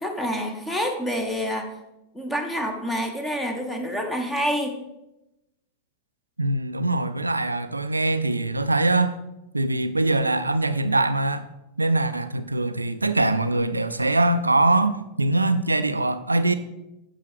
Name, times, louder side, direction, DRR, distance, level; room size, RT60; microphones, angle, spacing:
voice 1, 0.0-1.7 2.1-4.8, equal, 10° left, 1.3 m, -27 dB
voice 2, 6.4-9.2 9.5-11.5 11.8-16.5, right 2 dB, 80° right, 0.5 m, -22 dB
9.8 x 5.6 x 4.9 m
figure-of-eight pair, 90°, 0 cm